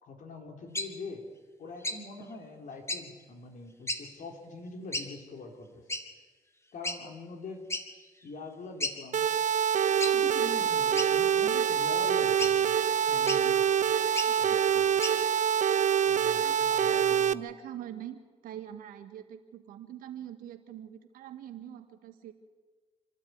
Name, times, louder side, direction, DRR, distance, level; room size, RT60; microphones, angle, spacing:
voice 1, 0.0-1.3 1.6-5.8 6.7-7.7 8.2-9.3 10.1-12.8 13.1-13.7 14.4-15.0 16.1-17.5, left 3 dB, 65° left, 3 dB, 3.9 m, -44 dB
sound 1, 0.7-0.9 1.8-2.0 2.9-3.0 3.9-4.0 4.9-5.1 5.9-6.0 6.8-7.0 7.7-7.9 8.3-8.4 8.8-9.0 10.0-10.2 11.0-11.5 12.4-12.5 13.3-13.4 14.1-14.3 15.0-15.2, left 1 dB, 20° left, 2.3 m, -33 dB
sound 2, 9.1-17.3, right 8 dB, 60° right, 0.7 m, -25 dB
voice 2, 14.2-14.8 16.4-18.2 18.4-22.3, right 11 dB, 90° right, 7 dB, 1.8 m, -44 dB
27.5 x 13.0 x 9.6 m, 1.4 s
supercardioid pair, 60°, 14 cm